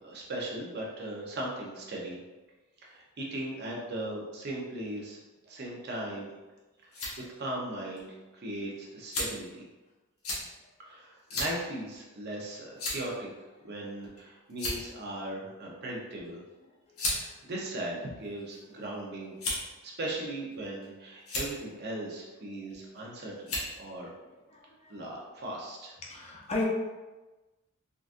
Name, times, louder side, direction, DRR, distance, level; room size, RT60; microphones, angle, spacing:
voice 1, 0.0-2.2 2.8-5.2 5.5-6.3 7.2-9.6 10.8-13.3 13.6-16.4 17.1-19.4 19.8-24.1 24.9-26.0, right 1 dB, 50° right, -3 dB, 0.7 m, -38 dB
sound 1, 6.6-7.1 8.0-8.1 9.1-9.5 10.2-10.4 11.3-11.5 11.9-12.0 12.8-13.1 14.0-14.2 14.5-15.0 16.1-16.3 17.0-17.2 18.0-18.6 19.4-19.8 20.5-20.9 21.2-21.5 22.7-23.0 23.4-23.7, left 2 dB, 80° left, 1.0 m, -33 dB
voice 2, 24.3-24.9 26.0-26.6, left 2 dB, 30° left, -2 dB, 0.6 m, -36 dB
3.8 x 2.4 x 2.5 m, 1.2 s
head